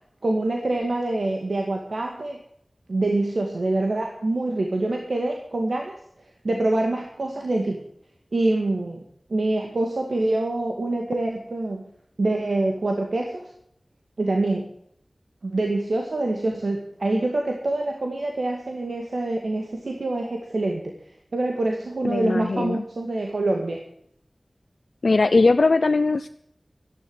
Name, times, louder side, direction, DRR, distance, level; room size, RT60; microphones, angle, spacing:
voice 1, 0.2-2.4 2.9-6.0 6.4-7.8 8.3-9.0 9.3-11.9 12.2-13.5 14.2-14.7 15.4-20.9 21.3-23.8, right 2 dB, 85° right, 2 dB, 2.1 m, -25 dB
voice 2, 22.0-22.8 25.0-26.3, left 3 dB, 80° left, 10 dB, 0.5 m, -20 dB
13.5 x 11.0 x 8.0 m, 0.71 s
wide cardioid pair, 65°, 0 cm